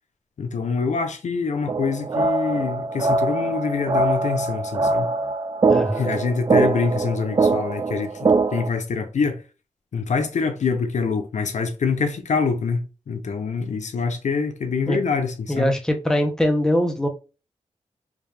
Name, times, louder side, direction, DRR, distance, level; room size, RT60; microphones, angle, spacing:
voice 1, 0.4-5.1 6.0-9.4 9.9-15.7, left 5 dB, 70° left, 0.6 m, -25 dB
sound 1, 1.7-8.7, right 3 dB, 35° right, 0.4 m, -22 dB
voice 2, 5.7-6.1 14.9-15.0 15.5-17.1, left 1 dB, 5° left, 0.9 m, -22 dB
3.6 x 2.6 x 3.3 m
cardioid pair, 65°, 13 cm